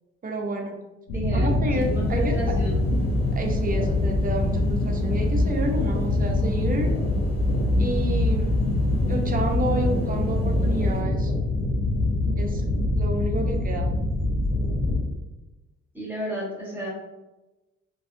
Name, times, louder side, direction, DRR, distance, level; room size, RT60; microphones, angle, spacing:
voice 1, 0.2-0.8 1.3-2.3 3.3-6.9 7.8-8.6 9.1-11.3 12.4-12.6 12.9-13.9, right 1 dB, 30° right, 2 dB, 0.5 m, -29 dB
sound 1, 1.1-15.0, left 2 dB, 75° left, 0.7 m, -24 dB
voice 2, 1.1-2.9 15.9-16.9, equal, 5° right, -6 dB, 1.1 m, -32 dB
sound 2, 1.7-11.0, equal, 35° left, 0.7 m, -35 dB
2.5 x 2.2 x 2.6 m, 1.0 s
cardioid pair, 90°, 30 cm